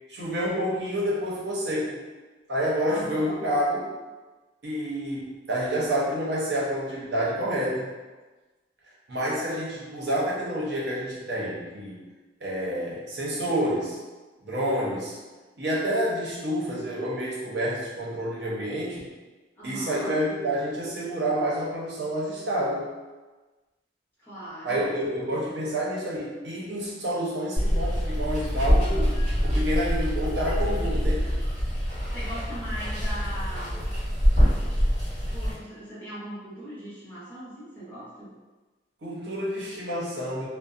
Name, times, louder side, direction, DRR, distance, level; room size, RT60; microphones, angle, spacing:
voice 1, 0.1-2.0 2.5-3.9 4.6-7.9 9.1-12.1 12.4-14.0 14.4-15.2 15.6-19.1 19.6-22.9 24.6-29.2 29.4-31.3 39.0-40.5, equal, 65° right, -6 dB, 0.8 m, -28 dB
voice 2, 2.8-3.5 19.6-20.1 24.2-25.0 32.1-33.8 35.3-38.3, equal, 10° left, -12 dB, 0.9 m, -39 dB
Water, 27.6-35.5, equal, 35° right, 1.5 m, -25 dB
2.5 x 2.1 x 2.5 m, 1.2 s
head